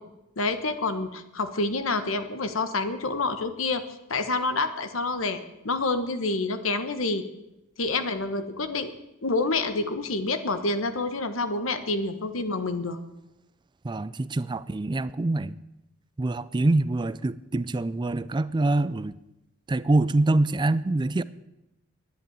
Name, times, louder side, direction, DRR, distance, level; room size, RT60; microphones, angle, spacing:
voice 1, 0.4-3.8 4.1-7.2 7.8-8.9 9.2-13.0, left 3 dB, 80° left, 10 dB, 1.3 m, -28 dB
voice 2, 13.8-15.5 16.2-19.1 19.7-21.2, right 2 dB, 20° right, 16 dB, 0.4 m, -25 dB
11.0 x 10.0 x 9.0 m, 0.91 s
head